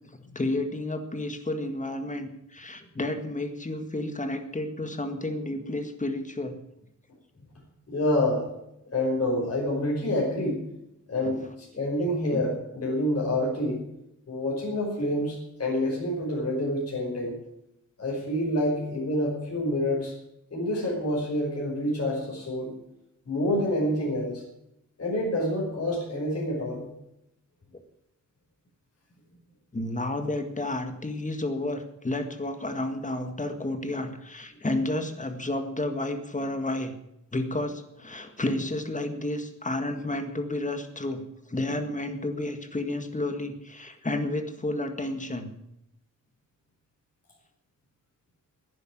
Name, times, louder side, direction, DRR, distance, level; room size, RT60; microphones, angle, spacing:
voice 1, 0.4-6.5 11.2-11.3 12.3-12.4 29.7-36.9 37.3-41.2 41.5-45.5, left 1 dB, 25° left, 7 dB, 1.9 m, -31 dB
voice 2, 7.9-8.5 8.9-10.6 11.1-13.8 14.3-17.3 18.0-20.1 20.5-22.7 23.3-24.4 25.0-26.9, left 1 dB, 50° left, -3 dB, 5.4 m, -27 dB
11.0 x 10.5 x 9.2 m, 0.82 s
wide cardioid pair, 105°, 30 cm